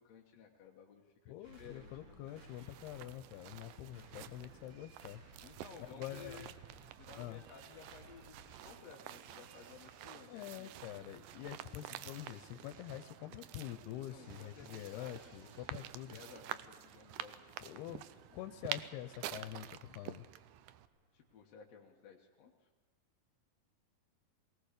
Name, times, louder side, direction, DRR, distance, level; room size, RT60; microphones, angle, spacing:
voice 1, 0.0-2.4 5.4-6.6 7.0-8.4 8.6-11.0 14.1-15.8 16.1-18.0 18.3-18.4 21.1-22.7, left 6 dB, 60° left, 0 dB, 1.9 m, -56 dB
voice 2, 1.3-5.2 5.8-6.5 7.2-7.4 10.3-16.2 17.6-18.0 18.3-20.3, left 13 dB, 85° left, 10 dB, 2.8 m, -46 dB
sound 1, 1.4-21.4, right 2 dB, 40° right, 2.6 m, -63 dB
sound 2, 2.3-20.9, right 13 dB, 85° right, 1.8 m, -49 dB
sound 3, 19.0-19.9, right 7 dB, 70° right, 2.5 m, -60 dB
21.0 x 18.5 x 6.7 m, 1.4 s
omnidirectional pair, 4.5 m